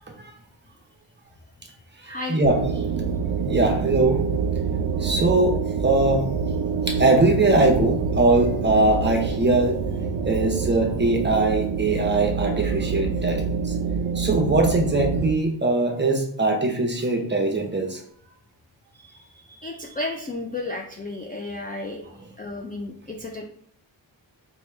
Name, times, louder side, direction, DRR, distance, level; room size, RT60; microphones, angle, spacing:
voice 1, 1.7-2.4 18.9-22.1 22.4-23.5, left 2 dB, 20° left, 1 dB, 0.3 m, -33 dB
sound 1, 2.4-15.3, right 5 dB, 70° right, 0.5 m, -26 dB
voice 2, 3.5-4.2 5.0-6.2 6.9-9.8 10.2-13.4 14.1-18.0, right 2 dB, 25° right, 2 dB, 0.7 m, -21 dB
4.4 x 2.2 x 3.1 m, 0.65 s
wide cardioid pair, 100°, 46 cm